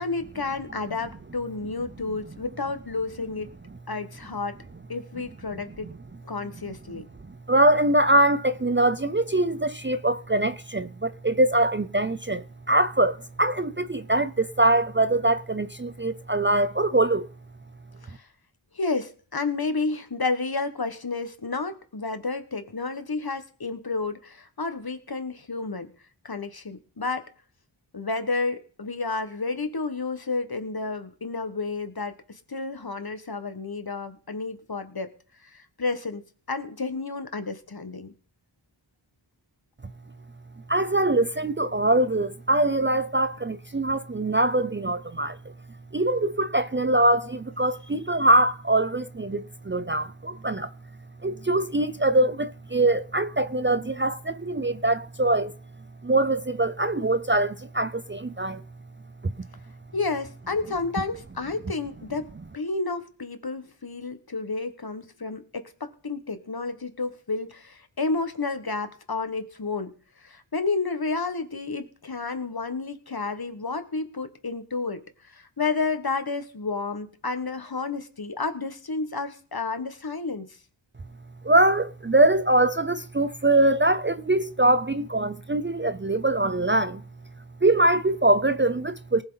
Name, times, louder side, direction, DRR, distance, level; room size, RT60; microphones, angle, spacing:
voice 1, 0.0-3.5 3.9-4.6 4.9-5.9 6.2-7.0 18.0-18.3 18.7-25.9 26.2-27.2 27.9-35.1 35.4-38.1 59.9-62.3 62.5-69.9 70.2-80.6, left 3 dB, 50° left, 1.6 m, -31 dB
voice 2, 7.5-17.3 40.7-45.4 45.9-50.7 51.2-55.5 56.0-58.6 59.2-59.5 81.4-87.0 87.6-89.2, right 2 dB, 25° right, 0.6 m, -23 dB
19.5 x 7.7 x 4.0 m
wide cardioid pair, 55°, 48 cm